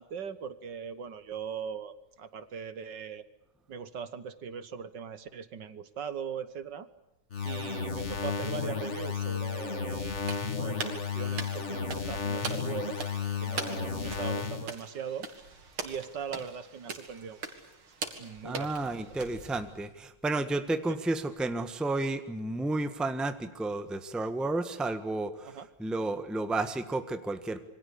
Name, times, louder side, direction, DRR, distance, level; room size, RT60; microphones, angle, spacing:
voice 1, 0.0-3.2 3.7-6.9 7.5-10.2 10.6-13.0 13.4-15.3 15.8-17.5 18.2-18.9 25.5-25.7, right 7 dB, 60° right, 13 dB, 1.8 m, -40 dB
sound 1, 7.3-14.7, left 6 dB, 35° left, 1.8 m, -33 dB
sound 2, 10.2-19.9, right 4 dB, 90° right, 3.5 m, -42 dB
voice 2, 18.4-27.6, right 2 dB, ahead, 9 dB, 1.2 m, -32 dB
27.0 x 23.5 x 8.5 m, 0.86 s
omnidirectional pair, 2.3 m